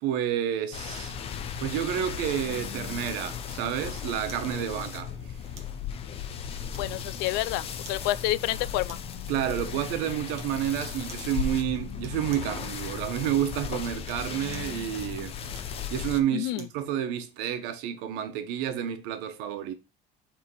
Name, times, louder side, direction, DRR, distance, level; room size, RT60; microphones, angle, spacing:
voice 1, 0.0-1.2 1.6-5.1 9.3-15.4 15.9-19.7, right 10 dB, 90° right, 1.2 m, -30 dB
sound 1, 0.7-16.2, left 7 dB, 35° left, 0.7 m, -36 dB
sound 2, 4.3-4.5 5.6-5.8 6.7-7.2 7.8-8.1 8.9-9.2 10.3-10.6 11.1-11.3 12.0-12.6 13.9-14.8 15.5-16.8 17.3-17.4, right 6 dB, 35° right, 1.3 m, -50 dB
voice 2, 6.8-9.0 16.3-16.7, left 17 dB, 75° left, 0.4 m, -29 dB
5.7 x 3.7 x 4.6 m
cardioid pair, 165°, 18 cm